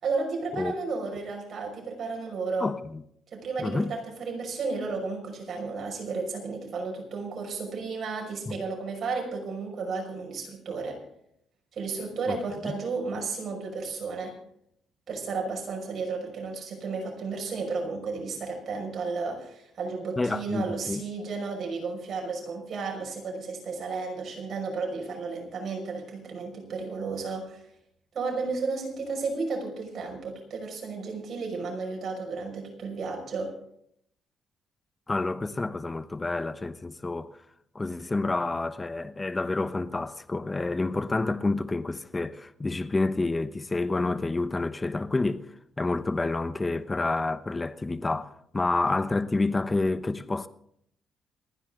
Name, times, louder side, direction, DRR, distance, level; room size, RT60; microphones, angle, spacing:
voice 1, 0.0-2.7 3.3-11.0 11.7-14.4 15.1-27.6 28.1-33.5, right 4 dB, 50° right, 5.9 m, -33 dB
voice 2, 2.6-3.0 3.6-3.9 8.5-8.6 12.3-12.4 12.6-12.8 20.2-21.0 35.1-37.3 37.7-45.5 45.8-50.5, left 3 dB, 20° left, 1.0 m, -29 dB
29.0 x 10.0 x 3.8 m
cardioid pair, 110°, 0 cm